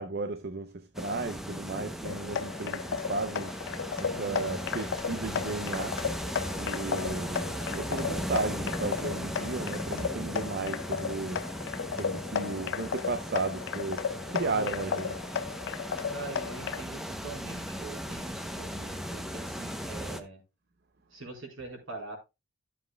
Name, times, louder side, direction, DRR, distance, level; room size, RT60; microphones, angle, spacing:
voice 1, 0.0-6.0 6.5-11.4 12.0-14.0 14.3-15.2, right 3 dB, 50° right, 0.7 m, -34 dB
sound 1, 0.9-20.2, equal, ahead, 0.7 m, -37 dB
sound 2, 2.0-16.8, left 7 dB, 55° left, 0.4 m, -35 dB
voice 2, 3.9-4.8 14.0-15.0 16.1-20.4 21.1-22.2, right 3 dB, 65° right, 4.3 m, -44 dB
13.0 x 7.5 x 2.3 m
head